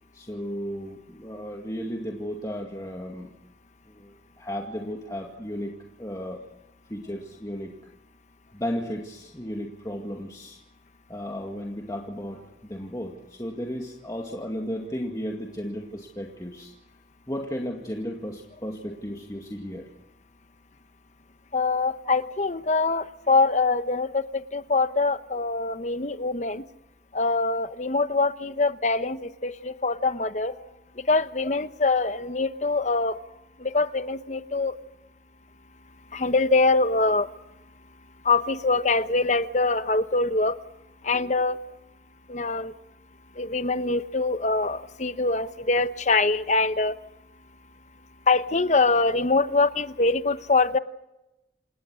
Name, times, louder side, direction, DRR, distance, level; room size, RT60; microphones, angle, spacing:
voice 1, 0.1-3.3 3.9-6.4 6.9-7.7 8.5-10.6 11.1-16.7 17.3-19.9 22.0-22.2, equal, 20° left, 0 dB, 2.1 m, -34 dB
voice 2, 21.5-26.6 27.1-30.6 31.0-33.2 33.6-34.7 36.1-37.3 38.2-40.6 41.0-41.6 42.3-42.7 43.4-47.0 48.3-50.8, left 3 dB, 40° left, 12 dB, 1.0 m, -24 dB
28.0 x 18.0 x 6.4 m, 0.92 s
head